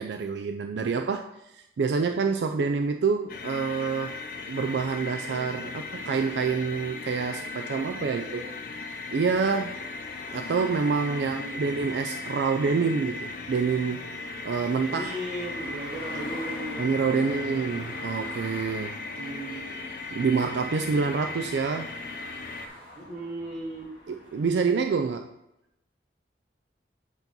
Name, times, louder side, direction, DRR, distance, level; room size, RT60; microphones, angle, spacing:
voice 1, 0.0-4.2 4.5-8.4 9.1-9.8 10.3-14.1 14.4-15.1 16.8-19.0 20.1-21.9 24.1-25.3, right 5 dB, 75° right, 5 dB, 0.4 m, -27 dB
sound 1, 3.3-22.7, left 3 dB, 50° left, 0.5 m, -37 dB
sound 2, 6.7-24.4, left 1 dB, 5° right, 2.5 m, -48 dB
voice 2, 8.1-8.5 11.1-11.6 14.7-18.0 19.1-19.9 22.9-23.9, right 1 dB, 40° right, -1 dB, 1.4 m, -38 dB
8.0 x 2.9 x 5.3 m, 0.87 s
head